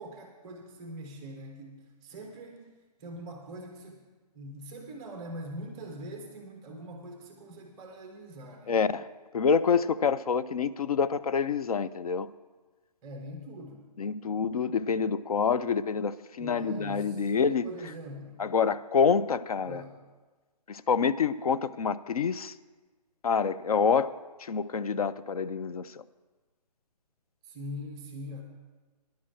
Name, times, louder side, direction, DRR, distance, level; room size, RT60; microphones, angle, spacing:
voice 1, 0.0-4.0 4.3-8.8 13.0-13.9 16.4-17.3 17.6-18.4 19.6-20.0 27.4-28.4, equal, 10° right, 3 dB, 0.4 m, -43 dB
voice 2, 8.7-9.1 9.3-12.3 14.0-17.7 18.4-19.8 20.7-22.6 23.2-24.1 24.4-26.0, left 6 dB, 60° left, 14 dB, 0.4 m, -27 dB
10.5 x 6.1 x 7.5 m, 1.3 s
hypercardioid pair, 160°, 21 cm